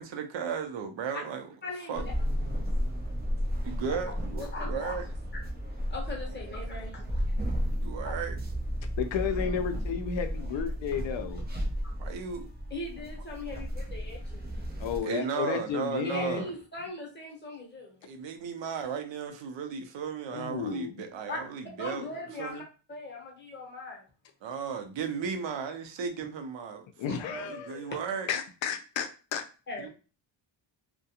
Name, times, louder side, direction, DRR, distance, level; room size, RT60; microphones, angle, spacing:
voice 1, 0.0-1.5 1.9-2.4 3.6-5.1 7.8-8.4 12.0-12.5 13.5-13.6 15.0-16.5 18.0-22.1 22.4-22.6 24.4-28.3 29.8-29.9, right 6 dB, 65° right, 6 dB, 0.6 m, -35 dB
voice 2, 1.6-2.1 3.9-4.0 4.4-4.9 5.9-7.3 9.3-9.6 12.7-14.5 16.0-18.0 21.3-21.4 21.8-22.6 22.9-24.0 29.7-29.9, left 2 dB, 25° left, -1 dB, 0.8 m, -40 dB
sound 1, 2.0-15.0, equal, 25° right, 0.3 m, -33 dB
voice 3, 9.0-11.4 14.8-16.4 20.3-21.0 27.0-27.9 28.3-29.4, left 7 dB, 70° left, 7 dB, 0.6 m, -32 dB
2.3 x 2.1 x 2.8 m, 0.34 s
wide cardioid pair, 160°, 48 cm